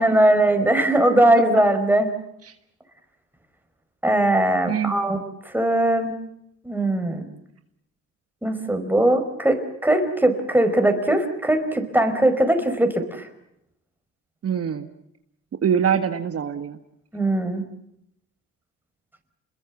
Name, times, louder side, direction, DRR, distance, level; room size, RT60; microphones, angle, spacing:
voice 1, 0.0-2.1 4.0-6.2 6.6-7.2 8.4-13.2 17.1-17.7, right 1 dB, 5° right, 6 dB, 4.8 m, -20 dB
voice 2, 4.7-5.2 14.4-14.9 15.6-16.8, right 8 dB, 50° right, 7 dB, 1.6 m, -24 dB
29.0 x 22.0 x 7.4 m, 0.78 s
cardioid pair, 90°, 30 cm